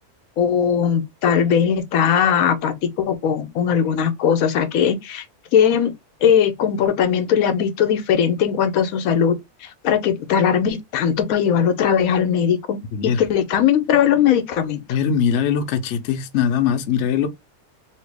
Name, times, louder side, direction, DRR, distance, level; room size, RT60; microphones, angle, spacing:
voice 1, 0.4-5.2 5.5-5.9 6.2-9.4 9.6-14.8, left 8 dB, 85° left, 1.1 m, -19 dB
voice 2, 12.9-13.2 14.9-17.3, left 7 dB, 65° left, 0.8 m, -21 dB
3.0 x 2.8 x 3.3 m
omnidirectional pair, 1.5 m